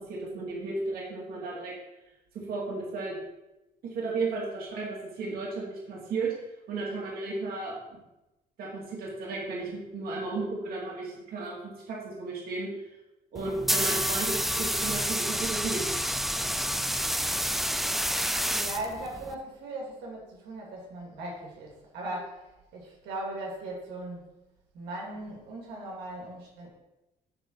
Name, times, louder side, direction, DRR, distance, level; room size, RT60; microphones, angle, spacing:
voice 1, 0.0-1.7 2.3-3.2 3.8-6.3 6.7-8.0 8.6-12.7 13.3-15.8, right 3 dB, 65° right, -3 dB, 2.2 m, -34 dB
sound 1, 13.3-19.3, equal, ahead, 0.4 m, -29 dB
voice 2, 18.4-22.5 22.7-24.3 24.7-26.7, right 1 dB, 85° right, -2 dB, 2.4 m, -38 dB
10.5 x 3.8 x 4.6 m, 0.97 s
cardioid pair, 110°, 17 cm